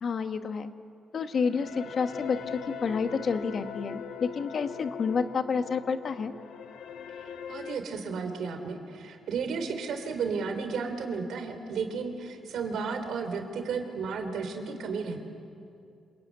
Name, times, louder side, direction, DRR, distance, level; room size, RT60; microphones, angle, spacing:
voice 1, 0.0-0.7 1.1-6.3, left 5 dB, 55° left, 8 dB, 1.4 m, -29 dB
sound 1, 1.2-7.8, left 7 dB, 85° left, 1.6 m, -41 dB
voice 2, 7.3-15.2, right 5 dB, 80° right, 6 dB, 3.6 m, -33 dB
27.5 x 22.5 x 9.7 m, 2.5 s
cardioid pair, 100°, 0 cm